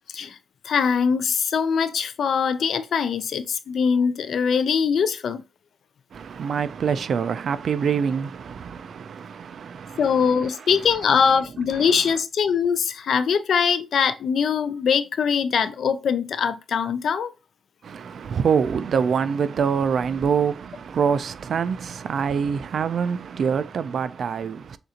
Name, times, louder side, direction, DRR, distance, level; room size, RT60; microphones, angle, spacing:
voice 1, 0.6-5.4 10.0-17.3, left 6 dB, 70° left, 0.4 m, -22 dB
voice 2, 6.1-11.2 11.7-11.9 17.8-24.8, right 6 dB, 60° right, 0.3 m, -25 dB
6.5 x 2.5 x 2.8 m
wide cardioid pair, 170°, 0 cm